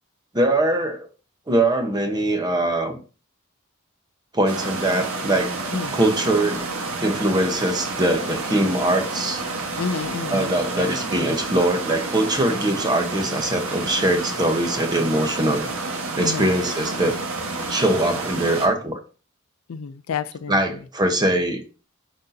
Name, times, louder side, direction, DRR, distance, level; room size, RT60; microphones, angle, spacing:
voice 1, 0.3-1.1 1.5-3.0 4.3-5.5 5.9-6.6 7.0-9.4 10.3-15.7 16.1-17.2 17.7-19.0 20.5-21.6, right 1 dB, 20° right, 0.9 m, -22 dB
sound 1, 4.5-18.7, right 3 dB, 80° right, 1.3 m, -29 dB
voice 2, 9.8-10.9 16.2-16.5 19.7-20.8, left 6 dB, 75° left, 0.4 m, -30 dB
10.5 x 4.1 x 2.7 m
head